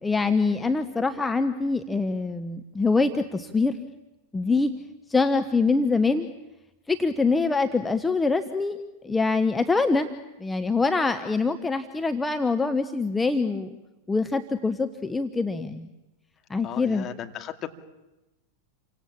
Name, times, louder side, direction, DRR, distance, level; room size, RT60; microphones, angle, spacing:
voice 1, 0.0-3.8 4.3-4.7 5.1-6.3 6.9-8.8 9.0-10.1 10.4-13.7 14.1-15.9 16.5-17.1, left 3 dB, 10° left, 8 dB, 1.1 m, -24 dB
voice 2, 16.6-17.7, left 11 dB, 30° left, 6 dB, 2.4 m, -36 dB
29.5 x 25.0 x 7.3 m, 1.0 s
figure-of-eight pair, 90°, 0 cm